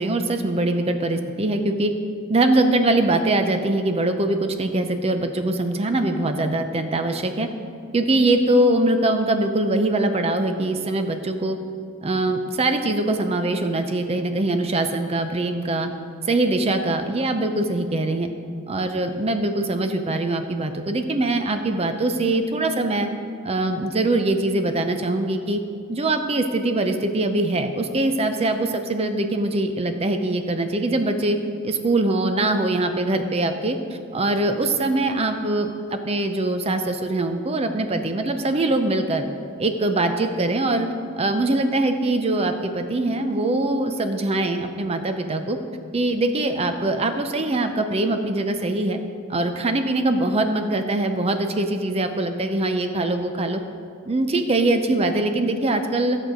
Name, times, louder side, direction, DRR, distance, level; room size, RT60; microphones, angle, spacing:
voice 1, 0.0-1.9 2.3-7.5 7.9-11.6 12.0-15.9 16.3-18.3 18.7-23.1 23.4-25.6 25.9-31.4 31.6-33.8 34.1-39.3 39.6-40.9 41.2-45.6 45.9-49.0 49.3-53.6 54.1-56.2, right 2 dB, 30° right, 7 dB, 0.6 m, -22 dB
13.0 x 6.3 x 5.1 m, 2.3 s
head